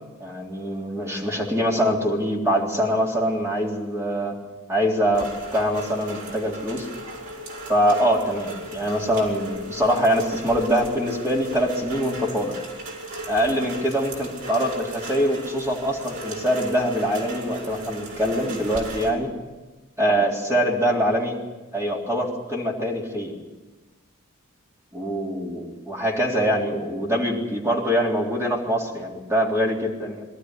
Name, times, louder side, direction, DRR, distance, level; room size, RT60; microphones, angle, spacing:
voice 1, 0.2-4.4 4.7-6.9 7.7-12.6 13.3-19.3 20.0-21.4 21.7-23.3 24.9-30.2, equal, 15° right, -2 dB, 3.6 m, -24 dB
Rain, 5.1-19.1, right 1 dB, 80° right, 5.7 m, -36 dB
23.0 x 13.0 x 9.8 m, 1.2 s
head